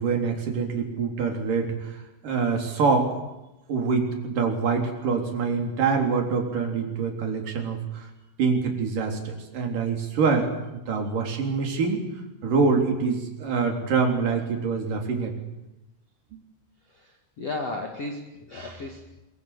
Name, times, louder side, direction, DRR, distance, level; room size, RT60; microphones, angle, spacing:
voice 1, 0.0-3.2 3.7-8.1 8.4-12.0 12.4-15.3 16.3-16.4, right 5 dB, 45° right, 2 dB, 4.8 m, -25 dB
voice 2, 16.9-19.1, left 2 dB, 50° left, 3 dB, 2.0 m, -35 dB
24.5 x 22.5 x 8.4 m, 0.97 s
omnidirectional pair, 6.0 m